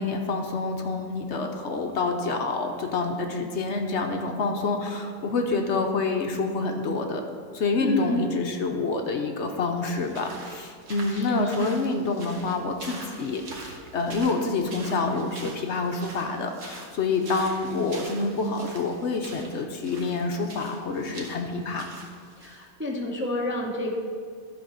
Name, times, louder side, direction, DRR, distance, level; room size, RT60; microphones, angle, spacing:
voice 1, 0.0-7.2 7.5-21.9, left 3 dB, 60° left, 4 dB, 1.0 m, -27 dB
voice 2, 7.8-8.4 11.1-11.7 22.4-24.0, left 2 dB, 15° right, -1 dB, 0.5 m, -29 dB
sound 1, 9.8-22.6, right 2 dB, 65° right, 1.6 m, -44 dB
12.0 x 4.3 x 5.5 m, 2.1 s
omnidirectional pair, 1.4 m